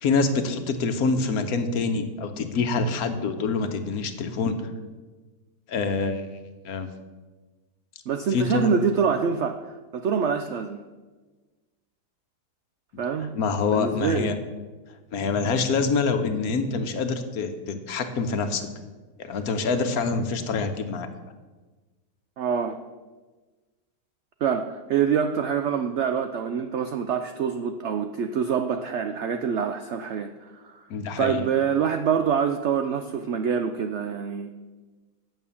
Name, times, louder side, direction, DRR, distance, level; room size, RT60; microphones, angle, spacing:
voice 1, 0.0-4.7 5.7-6.3 6.6-6.9 8.3-8.7 13.2-14.3 15.1-18.7 19.2-21.1 30.9-31.5, left 4 dB, 65° left, 8 dB, 1.3 m, -26 dB
voice 2, 8.1-10.8 13.0-13.3 13.7-14.4 22.4-22.8 24.4-30.8 31.2-34.5, right 7 dB, 75° right, 8 dB, 0.6 m, -26 dB
9.1 x 6.7 x 7.0 m, 1.3 s
omnidirectional pair, 1.8 m